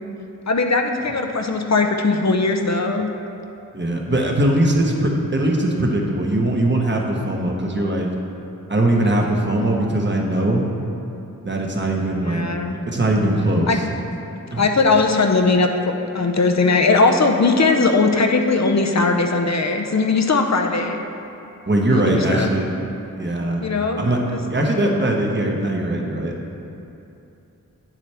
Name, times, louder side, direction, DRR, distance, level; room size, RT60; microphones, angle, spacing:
voice 1, 0.5-3.1 12.3-12.8 13.7-13.8 14.5-15.7 16.1-21.0 21.9-22.5 23.6-24.0, left 3 dB, 55° left, 4 dB, 0.6 m, -19 dB
voice 2, 3.7-8.1 8.7-10.7 11.4-12.4 12.9-13.8 14.5-14.7 21.7-22.7 23.2-23.6 24.0-24.2 24.5-26.3, right 1 dB, 35° right, 0 dB, 1.0 m, -20 dB
9.0 x 7.4 x 3.4 m, 2.8 s
wide cardioid pair, 70°, 33 cm